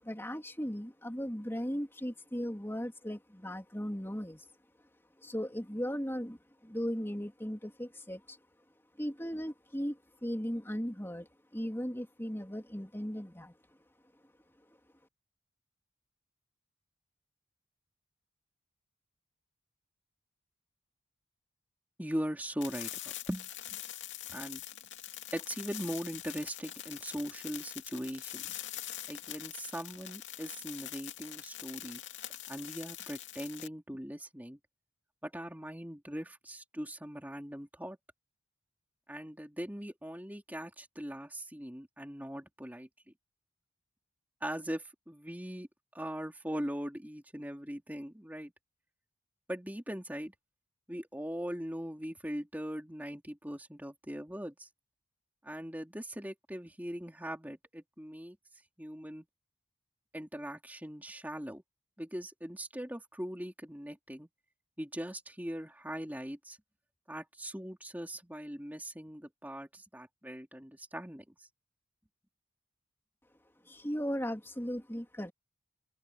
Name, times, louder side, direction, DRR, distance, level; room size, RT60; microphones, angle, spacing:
voice 1, 0.0-4.5 5.2-8.4 9.0-13.5 73.7-75.3, equal, 10° left, 3.5 m, -37 dB
voice 2, 22.0-23.0 23.3-23.8 24.3-24.6 25.3-28.6 29.1-32.0 32.5-34.6 35.2-38.0 39.1-42.9 44.4-45.7 45.9-48.5 49.5-50.3 50.9-54.7 55.4-58.4 58.8-59.2 60.1-61.6 62.0-64.3 64.8-66.6 67.1-71.5, equal, 10° right, 3.3 m, -40 dB
sound 1, 22.6-33.7, left 12 dB, 60° left, 2.7 m, -44 dB
open air
head